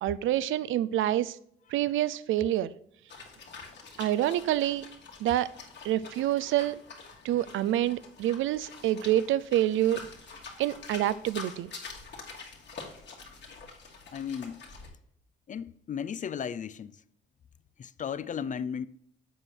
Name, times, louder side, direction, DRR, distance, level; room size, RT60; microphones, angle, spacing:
voice 1, 0.0-1.3 1.7-2.7 4.0-4.9 5.2-5.5 5.8-6.8 7.2-10.0 10.6-11.7, right 13 dB, 80° right, 0.5 m, -27 dB
sound 1, 3.1-14.9, left 4 dB, 60° left, 2.2 m, -46 dB
voice 2, 14.1-14.6 15.5-16.9 17.8-18.9, left 7 dB, 40° left, 0.4 m, -35 dB
7.7 x 4.8 x 4.4 m
cardioid pair, 90°, 20 cm